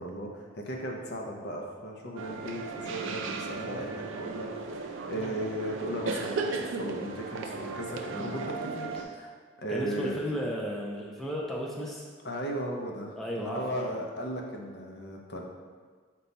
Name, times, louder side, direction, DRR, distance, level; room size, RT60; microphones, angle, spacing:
voice 1, 0.0-9.3 9.6-10.2 12.2-15.4, right 1 dB, 55° left, 0 dB, 0.5 m, -36 dB
sound 1, 2.2-9.0, right 3 dB, 90° right, 0.4 m, -36 dB
voice 2, 9.7-12.1 13.2-13.9, equal, ahead, -4 dB, 0.4 m, -34 dB
5.2 x 2.3 x 4.0 m, 1.6 s
head